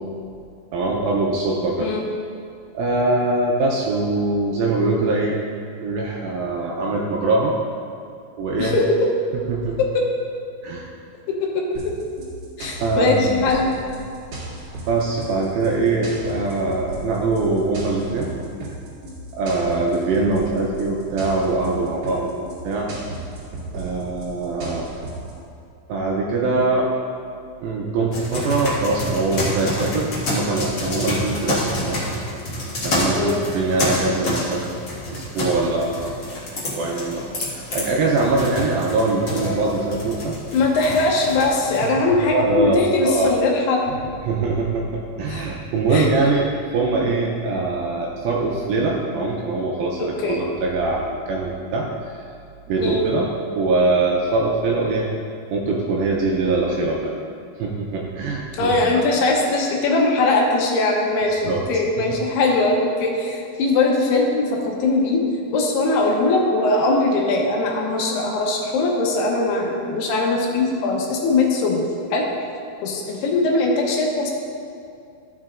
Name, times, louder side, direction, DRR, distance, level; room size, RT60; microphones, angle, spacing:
voice 1, 0.7-1.9 2.7-5.4 5.8-7.6 8.4-8.7 9.5-9.8 10.6-10.9 12.8-13.5 14.9-18.3 19.3-22.9 23.7-24.9 25.9-26.9 27.6-32.0 32.8-34.6 35.1-36.3 36.5-40.4 41.8-41.9 42.3-42.8 43.0-43.4 44.3-44.8 45.2-52.3 52.7-55.1 55.5-57.1 57.6-59.3 61.4-61.6, right 3 dB, 85° right, -2 dB, 2.2 m, -22 dB
sound 1, 11.7-25.3, right 2 dB, 50° right, 2.8 m, -35 dB
voice 2, 12.6-13.7 33.2-33.4 40.5-43.8 45.3-45.5 45.9-46.1 50.0-50.4 52.8-53.0 58.6-65.2 65.5-71.8 72.1-72.3 72.8-74.3, left 2 dB, 80° left, -1 dB, 2.9 m, -20 dB
sound 2, 28.1-41.9, left 1 dB, 45° left, 1.6 m, -28 dB
13.5 x 6.3 x 2.5 m, 2.4 s
omnidirectional pair, 4.8 m